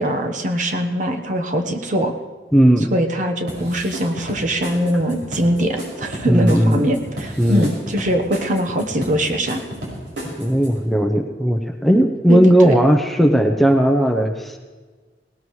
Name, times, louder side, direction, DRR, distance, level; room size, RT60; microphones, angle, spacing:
voice 1, 0.0-2.1 2.9-9.6 12.3-12.7, equal, 45° right, 4 dB, 1.1 m, -22 dB
voice 2, 2.5-2.9 6.3-6.9 7.4-7.7 10.4-14.6, equal, ahead, 3 dB, 0.7 m, -16 dB
sound 1, 3.5-10.9, right 1 dB, 90° right, 5.9 m, -33 dB
18.5 x 18.5 x 3.2 m, 1.4 s
head